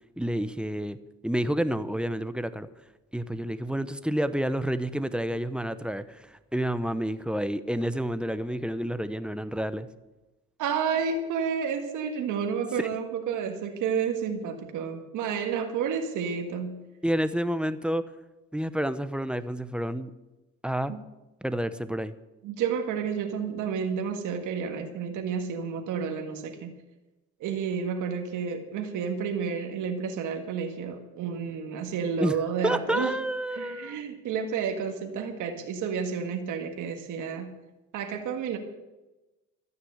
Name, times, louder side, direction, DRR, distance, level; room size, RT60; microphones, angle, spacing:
voice 1, 0.2-1.0 1.2-2.7 3.1-9.9 12.8-12.9 17.0-18.1 18.5-20.1 20.6-20.9 21.4-22.1 32.2-32.4 32.6-34.0, equal, 5° right, 12 dB, 0.8 m, -29 dB
voice 2, 10.6-16.8 20.9-21.0 22.4-26.7 27.4-33.1 33.5-37.5 37.9-38.6, right 6 dB, 85° right, 4 dB, 1.7 m, -30 dB
13.0 x 9.6 x 8.1 m, 1.1 s
cardioid pair, 90°, 30 cm